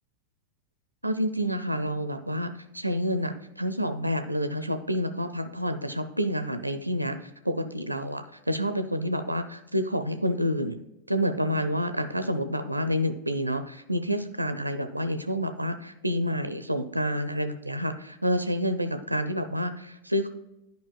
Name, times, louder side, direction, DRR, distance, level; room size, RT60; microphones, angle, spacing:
voice 1, 1.0-7.2 7.4-10.8 11.1-20.3, equal, 85° right, 9 dB, 0.4 m, -28 dB
11.5 x 5.1 x 2.3 m, 0.91 s
figure-of-eight pair, 90°, 0 cm